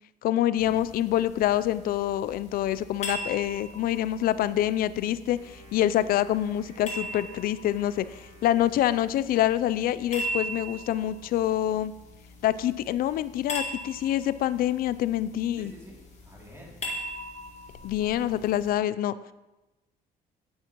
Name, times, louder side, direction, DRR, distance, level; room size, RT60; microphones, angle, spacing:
voice 1, 0.2-11.9 12.4-15.7 17.8-19.1, left 12 dB, 60° left, 16 dB, 0.4 m, -26 dB
sound 1, 0.6-18.7, equal, 40° left, 1.9 m, -40 dB
Wind instrument woodwind instrument, 5.3-9.8, right 3 dB, 85° right, 1.7 m, -54 dB
voice 2, 15.6-16.7, equal, 15° right, -3 dB, 2.8 m, -49 dB
8.9 x 8.8 x 3.0 m, 1.0 s
cardioid pair, 110°, 17 cm